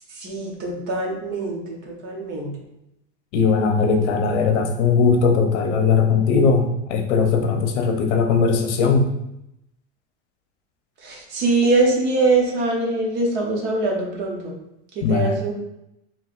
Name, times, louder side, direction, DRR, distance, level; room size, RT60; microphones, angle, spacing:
voice 1, 0.2-2.5 11.0-14.5 15.0-15.5, right 3 dB, 30° right, -1 dB, 0.8 m, -23 dB
voice 2, 3.3-9.1 15.0-15.4, left 5 dB, 75° left, 5 dB, 0.8 m, -19 dB
4.7 x 3.1 x 2.5 m, 0.83 s
supercardioid pair, 170°, 35 cm